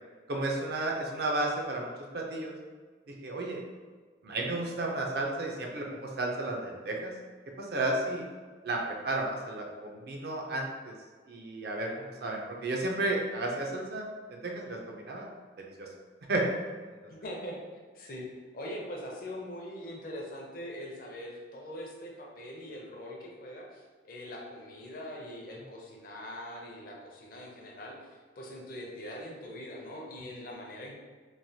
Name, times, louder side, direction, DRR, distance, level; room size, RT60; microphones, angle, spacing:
voice 1, 0.3-2.5 3.2-3.6 4.2-7.1 7.6-8.2 8.6-10.9 11.3-14.0 14.3-15.3 15.8-15.9 16.3-16.5, right 2 dB, 55° right, 0 dB, 0.5 m, -32 dB
voice 2, 17.1-17.6 17.9-18.3 18.5-23.8 24.1-30.9, left 1 dB, 50° left, -1 dB, 0.5 m, -42 dB
3.1 x 2.1 x 2.6 m, 1.5 s
head